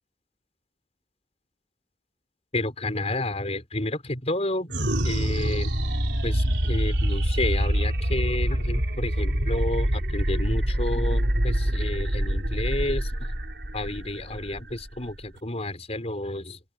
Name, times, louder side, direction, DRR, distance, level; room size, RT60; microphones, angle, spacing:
voice 1, 2.5-4.7 5.0-5.7 6.2-13.1 13.7-16.6, left 1 dB, 35° left, 5.4 m, -30 dB
sound 1, 4.7-15.4, equal, 75° right, 3.9 m, -25 dB
open air
head